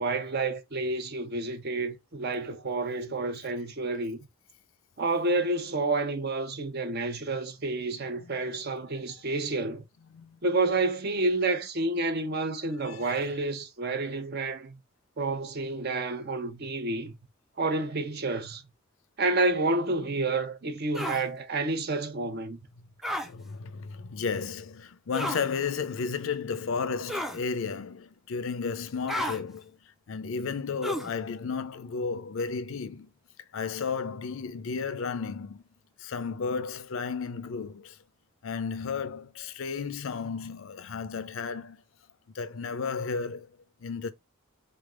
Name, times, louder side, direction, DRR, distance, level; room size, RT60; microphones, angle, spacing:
voice 1, 0.0-4.2 5.0-9.8 10.4-14.8 15.2-17.1 17.6-18.6 19.2-22.6, right 2 dB, 50° right, 0.7 m, -29 dB
voice 2, 12.9-13.2 23.2-29.8 30.1-33.1 33.5-35.6 36.0-38.0 38.4-41.8 42.3-43.5 43.8-44.1, left 5 dB, 65° left, 0.5 m, -33 dB
sound 1, 20.9-21.2 23.0-23.3 25.1-25.5 27.1-27.4 29.1-29.4 30.8-31.1, left 1 dB, ahead, 0.4 m, -32 dB
3.9 x 3.4 x 2.4 m
head